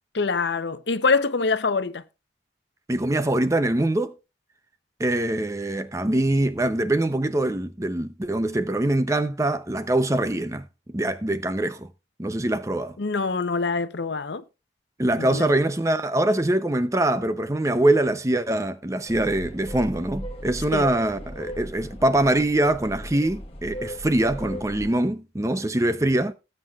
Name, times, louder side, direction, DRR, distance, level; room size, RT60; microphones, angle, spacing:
voice 1, 0.1-2.0 13.0-14.4 15.2-15.5 20.7-20.9, left 4 dB, 80° left, 0.7 m, -24 dB
voice 2, 2.9-4.2 5.0-10.7 10.9-11.9 12.2-13.0 15.0-26.3, right 1 dB, 15° right, 0.6 m, -23 dB
sound 1, 19.1-24.9, equal, 30° left, 1.2 m, -37 dB
19.5 x 7.6 x 2.4 m
head